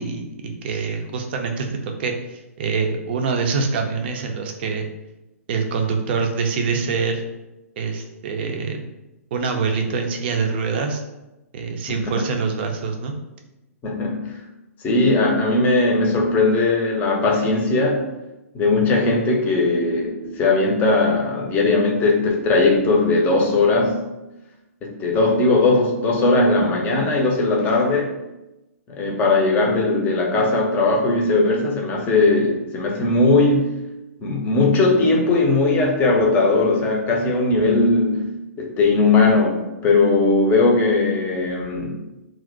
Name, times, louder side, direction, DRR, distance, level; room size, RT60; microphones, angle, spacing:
voice 1, 0.0-4.9 5.5-7.2 7.8-8.9 9.3-11.0 11.5-13.1, right 5 dB, 40° right, 3 dB, 0.5 m, -25 dB
voice 2, 11.9-12.2 13.8-14.3 14.8-18.0 18.5-24.0 24.8-28.1 28.9-33.7 34.2-38.3 38.6-42.0, left 3 dB, 20° left, 0 dB, 0.6 m, -19 dB
2.5 x 2.0 x 3.8 m, 0.97 s
figure-of-eight pair, 120°, 8 cm